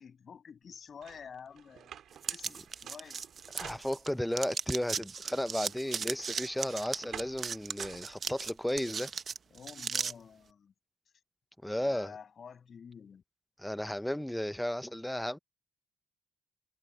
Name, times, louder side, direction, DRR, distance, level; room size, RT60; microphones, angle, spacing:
voice 1, 0.0-3.3 9.5-10.7 11.7-13.2, left 6 dB, 55° left, 7.7 m, -50 dB
sound 1, 1.0-4.4 4.9-8.8, right 10 dB, 75° right, 4.0 m, -51 dB
sound 2, 2.2-4.1 4.3-10.1, right 6 dB, 50° right, 1.0 m, -37 dB
voice 2, 3.5-9.1 11.6-12.1 13.6-15.4, left 1 dB, 5° left, 0.8 m, -34 dB
cardioid pair, 70°, 0 cm